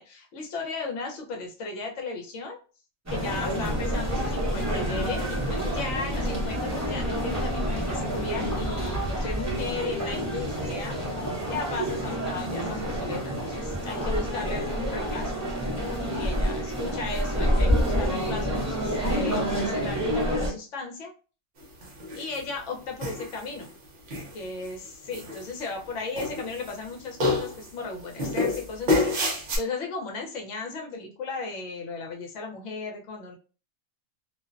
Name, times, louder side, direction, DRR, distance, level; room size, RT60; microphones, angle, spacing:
voice 1, 0.0-2.6 3.1-11.0 11.5-15.4 16.2-21.1 22.1-23.7 24.3-33.4, left 3 dB, 70° left, 2 dB, 1.0 m, -36 dB
sound 1, 3.1-20.5, equal, 20° right, 0.5 m, -28 dB
sound 2, 4.0-9.6, equal, 30° left, 0.8 m, -34 dB
sound 3, 21.8-22.4 23.0-23.7 24.1-24.7 25.1-25.9 26.1-26.9 27.2-27.7 28.2-29.6, left 2 dB, 50° right, 0.7 m, -28 dB
2.5 x 2.1 x 2.4 m, 0.35 s
omnidirectional pair, 1.4 m